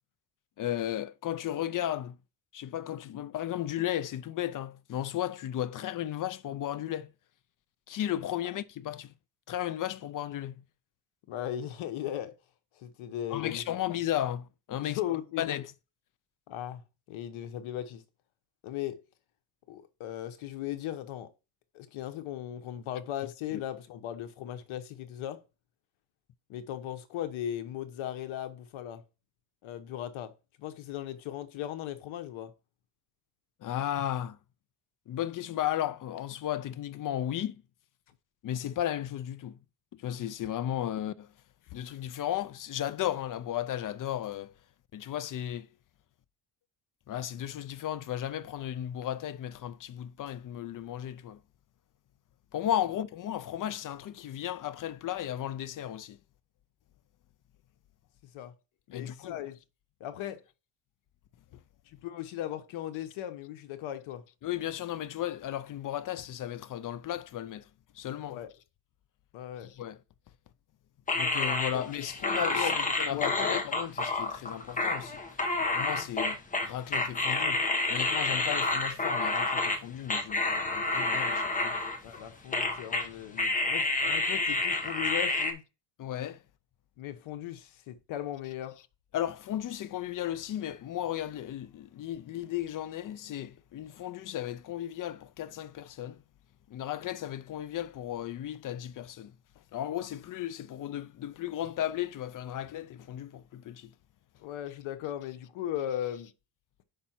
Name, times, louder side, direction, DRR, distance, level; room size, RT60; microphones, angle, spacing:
voice 1, 0.6-2.2 2.5-7.1 7.9-9.1 9.5-10.6 13.3-15.0 15.4-15.7 23.5-23.6 33.6-34.4 35.1-37.6 38.4-39.6 39.9-41.3 41.7-44.5 44.9-45.7 47.1-51.4 52.5-56.2 58.9-59.4 64.4-67.7 67.9-68.4 69.6-70.0 71.1-75.2 75.7-77.6 77.9-81.8 86.0-86.4 89.1-96.2 96.7-99.3 99.7-103.9, left 11 dB, 45° left, 0.5 m, -35 dB
voice 2, 11.3-12.3 12.8-13.9 14.8-15.5 16.5-16.8 17.1-18.0 18.6-19.0 19.7-21.3 21.7-25.4 26.5-29.0 29.6-30.3 30.6-32.5 58.3-58.5 58.9-59.6 60.0-60.4 61.9-64.2 68.3-68.5 69.3-69.7 71.7-72.1 72.5-73.6 82.0-85.6 87.0-88.8 104.4-106.3, left 11 dB, 80° left, 1.1 m, -37 dB
sound 1, 71.1-79.8 80.1-82.2 82.5-83.1 83.4-85.5, left 2 dB, 15° left, 1.1 m, -29 dB
5.6 x 5.2 x 4.3 m
cardioid pair, 125°, 47 cm